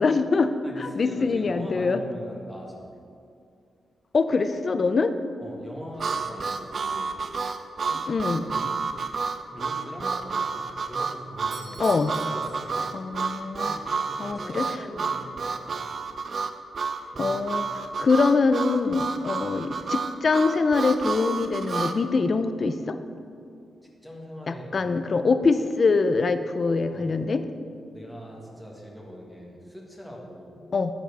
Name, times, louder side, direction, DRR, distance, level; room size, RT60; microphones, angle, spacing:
voice 1, 0.0-0.5 0.8-2.0 4.1-5.1 8.1-8.4 11.8-12.1 12.9-13.7 14.2-14.6 17.2-23.0 24.5-27.4 30.7-30.9, left 4 dB, 45° left, 10 dB, 0.5 m, -24 dB
voice 2, 0.6-2.9 5.4-7.2 7.9-8.8 9.5-12.0 12.3-12.9 13.6-15.9 17.1-17.4 24.0-25.2 26.9-27.2 27.9-30.7, equal, ahead, -2 dB, 1.6 m, -42 dB
Harmonica, 6.0-22.0, right 5 dB, 55° right, 0.5 m, -30 dB
Doorbell, 11.5-13.3, right 2 dB, 90° right, 1.7 m, -47 dB
12.0 x 7.4 x 3.5 m, 2.4 s
cardioid pair, 105°, 0 cm